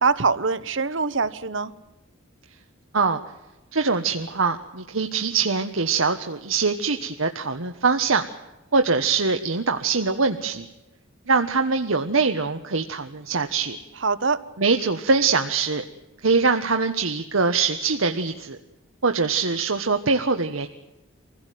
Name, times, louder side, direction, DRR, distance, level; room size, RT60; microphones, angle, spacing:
voice 1, 0.0-1.7 14.0-14.4, right 4 dB, 65° right, 14 dB, 1.1 m, -23 dB
voice 2, 3.7-8.2 8.7-10.7 11.3-13.8 14.6-15.8 16.2-18.6 19.0-20.7, right 4 dB, 85° right, 6 dB, 1.3 m, -23 dB
25.0 x 16.5 x 9.3 m, 1.0 s
head